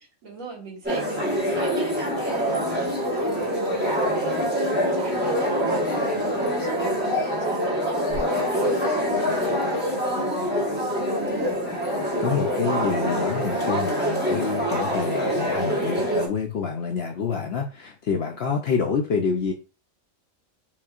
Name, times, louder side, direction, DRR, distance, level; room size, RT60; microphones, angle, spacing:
voice 1, 0.2-2.7 3.1-9.7, right 2 dB, 70° right, 1.6 m, -39 dB
sound 1, 0.8-16.3, equal, 10° right, 1.2 m, -25 dB
sound 2, 4.7-4.9 7.1-7.3 8.1-8.2, left 3 dB, 80° left, 1.9 m, -28 dB
voice 2, 12.2-19.5, left 6 dB, 65° left, 0.7 m, -27 dB
5.4 x 2.6 x 2.4 m
omnidirectional pair, 1.4 m